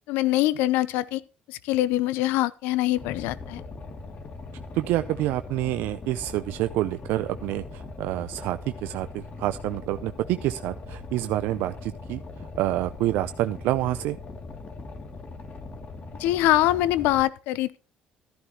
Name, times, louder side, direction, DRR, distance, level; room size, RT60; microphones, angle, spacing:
voice 1, 0.1-1.2 1.5-3.6 16.2-17.8, left 15 dB, 85° left, 0.6 m, -24 dB
Boat Water vehicle, 2.9-17.2, left 3 dB, 45° left, 2.6 m, -40 dB
voice 2, 4.7-12.2 12.6-14.2, right 15 dB, 80° right, 0.5 m, -27 dB
13.0 x 11.0 x 2.9 m
supercardioid pair, 70°, 3 cm